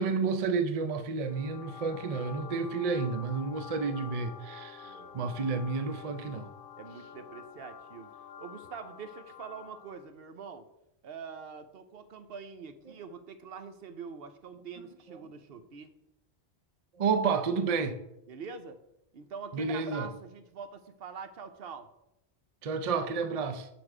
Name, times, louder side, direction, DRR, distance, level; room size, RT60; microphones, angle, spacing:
voice 1, 0.0-6.5 15.1-15.2 17.0-18.0 19.5-20.1 22.6-23.7, right 5 dB, 45° right, 0.6 m, -31 dB
sound 1, 1.2-10.1, left 7 dB, 60° left, 0.8 m, -48 dB
voice 2, 4.8-5.1 6.8-8.1 8.4-10.6 11.0-15.9 18.3-18.8 19.1-21.9, right 6 dB, 70° right, 0.9 m, -44 dB
6.9 x 6.1 x 4.8 m
omnidirectional pair, 1.0 m